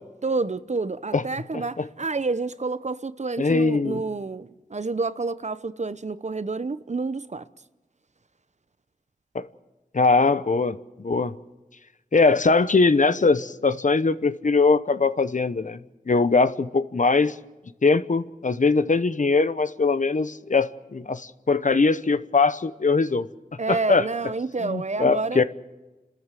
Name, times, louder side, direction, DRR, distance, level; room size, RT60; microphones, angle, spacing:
voice 1, 0.2-7.4 23.6-25.4, right 3 dB, 50° right, 0.8 m, -29 dB
voice 2, 3.4-4.0 9.3-9.5 9.9-11.3 12.1-15.8 16.1-17.3 17.8-23.3 23.7-24.1 24.6-25.4, left 4 dB, 55° left, 0.9 m, -21 dB
29.5 x 13.5 x 7.6 m
wide cardioid pair, 45°, 15 cm